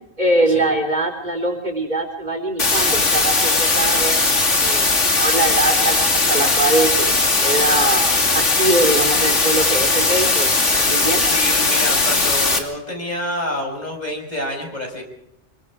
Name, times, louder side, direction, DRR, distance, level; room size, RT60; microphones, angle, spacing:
voice 1, 0.2-4.2 4.6-8.0 8.3-10.5 10.8-11.2, right 2 dB, 40° right, 1 dB, 3.9 m, -22 dB
sound 1, 2.6-12.6, left 3 dB, 85° left, 3.0 m, -18 dB
voice 2, 11.2-15.0, left 1 dB, 35° left, 1 dB, 5.8 m, -28 dB
26.5 x 23.5 x 4.9 m, 0.82 s
omnidirectional pair, 1.2 m